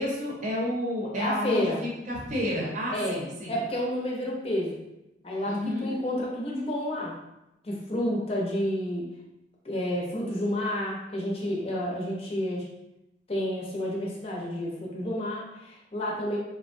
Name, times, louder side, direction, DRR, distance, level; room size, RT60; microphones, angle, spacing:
voice 1, 0.0-3.5 5.4-5.9, left 1 dB, 45° right, -3 dB, 0.7 m, -30 dB
voice 2, 1.2-1.8 2.9-4.8 5.2-7.1 7.6-9.0 9.6-12.6 13.3-16.4, left 1 dB, 35° left, -3 dB, 0.6 m, -30 dB
3.4 x 2.2 x 2.6 m, 0.92 s
head